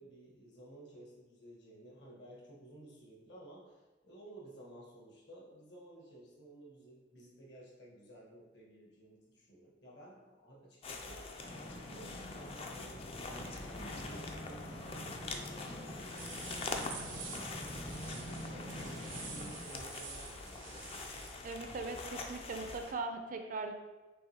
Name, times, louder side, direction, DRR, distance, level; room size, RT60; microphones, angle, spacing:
voice 1, 0.0-17.4 17.7-21.1, right 1 dB, 65° left, -3 dB, 1.2 m, -55 dB
sound 1, 10.8-22.9, left 3 dB, 30° left, 0.4 m, -44 dB
sound 2, 11.4-19.6, equal, 50° left, 1.1 m, -46 dB
sound 3, 16.1-21.3, right 5 dB, 80° right, 0.7 m, -48 dB
voice 2, 21.4-23.7, right 3 dB, 45° right, 5 dB, 0.4 m, -40 dB
6.3 x 2.6 x 2.8 m, 1.2 s
head